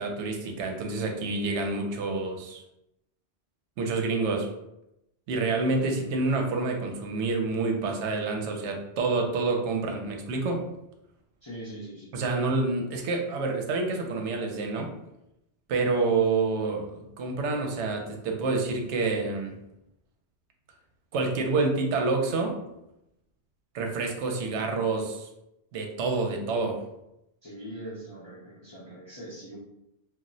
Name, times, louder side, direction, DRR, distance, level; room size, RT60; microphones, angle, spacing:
voice 1, 0.0-2.6 3.8-4.5 5.3-10.6 12.1-14.9 15.7-19.6 21.1-22.6 23.7-25.3 25.7-26.8, right 3 dB, 80° right, 3 dB, 0.9 m, -28 dB
voice 2, 5.6-6.1 11.4-12.2 27.4-29.6, right 1 dB, 30° left, -9 dB, 0.6 m, -42 dB
2.3 x 2.1 x 3.7 m, 0.85 s
omnidirectional pair, 1.2 m